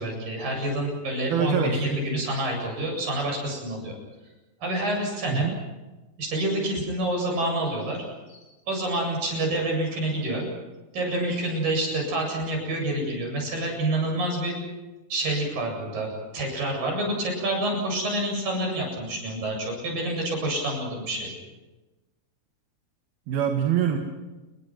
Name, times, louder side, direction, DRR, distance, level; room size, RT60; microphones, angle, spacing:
voice 1, 0.0-4.0 4.6-5.5 6.2-8.4 8.7-10.5 10.9-14.6 15.1-16.1 16.3-21.3, right 1 dB, 65° right, 1 dB, 9.7 m, -28 dB
voice 2, 1.3-1.8 5.3-5.6 23.3-24.0, right 8 dB, 85° right, 4 dB, 3.7 m, -24 dB
29.5 x 22.0 x 6.1 m, 1.1 s
omnidirectional pair, 4.2 m